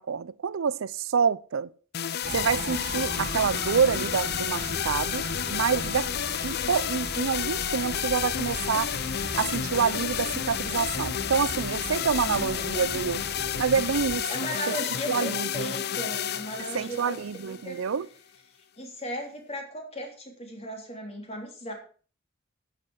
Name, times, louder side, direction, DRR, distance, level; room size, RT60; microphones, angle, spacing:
voice 1, 0.0-1.7 2.3-6.1 6.4-8.9 9.4-13.2 13.6-14.3 14.7-14.8 15.1-15.7 16.7-18.1, right 6 dB, 80° right, 0.5 m, -27 dB
sound 1, 1.9-18.0, left 9 dB, 50° left, 0.6 m, -31 dB
sound 2, 2.2-14.2, right 1 dB, 45° right, 1.7 m, -39 dB
voice 2, 12.2-12.7 14.3-17.8 18.8-21.7, equal, 30° left, 3.5 m, -37 dB
11.0 x 8.1 x 6.3 m
head